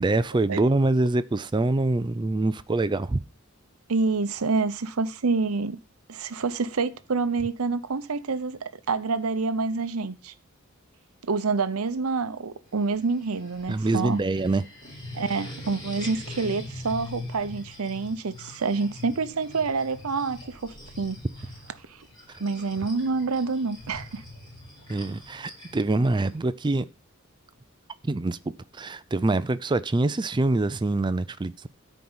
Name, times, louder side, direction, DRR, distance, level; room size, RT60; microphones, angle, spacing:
voice 1, 0.0-3.2 13.7-14.6 24.9-26.9 28.0-28.4 28.8-31.7, right 2 dB, 20° right, 0.4 m, -25 dB
voice 2, 3.9-5.8 6.1-8.6 8.9-10.3 11.2-14.2 15.1-21.2 21.9-22.1 22.4-24.2, right 4 dB, 80° right, 0.7 m, -27 dB
sound 1, 12.7-26.4, left 2 dB, 20° left, 4.0 m, -43 dB
13.5 x 4.6 x 5.5 m
head